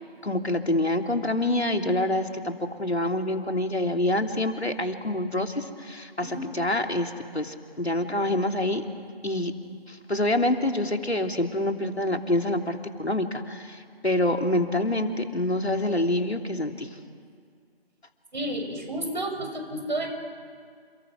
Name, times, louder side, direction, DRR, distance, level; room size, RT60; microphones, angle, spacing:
voice 1, 0.2-2.5 2.8-8.8 9.2-9.5 9.9-16.9, left 1 dB, 85° left, 4 dB, 3.1 m, -26 dB
voice 2, 18.3-20.1, right 1 dB, 45° right, 5 dB, 6.1 m, -31 dB
30.0 x 30.0 x 6.3 m, 2.1 s
figure-of-eight pair, 160°, 31 cm